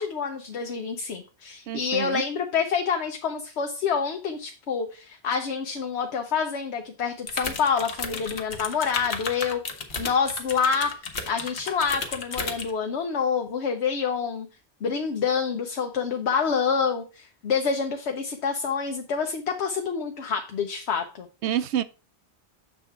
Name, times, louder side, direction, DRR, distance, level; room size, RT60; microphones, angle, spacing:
voice 1, 0.0-9.6 10.0-10.9 11.3-14.5 14.8-21.3, left 6 dB, 80° left, 1.1 m, -27 dB
voice 2, 1.7-2.2 21.4-21.8, right 10 dB, 90° right, 0.9 m, -27 dB
sound 1, 7.3-12.7, left 4 dB, 60° left, 1.3 m, -33 dB
7.4 x 3.5 x 5.6 m
omnidirectional pair, 1.1 m